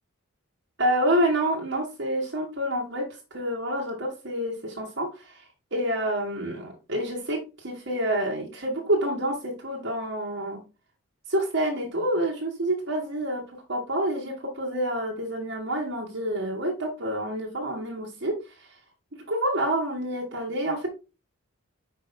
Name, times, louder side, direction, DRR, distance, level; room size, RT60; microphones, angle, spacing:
voice 1, 0.8-5.4 5.7-10.6 11.3-18.4 19.1-20.9, right 1 dB, 55° right, -2 dB, 1.5 m, -28 dB
5.8 x 5.1 x 3.5 m, 0.30 s
head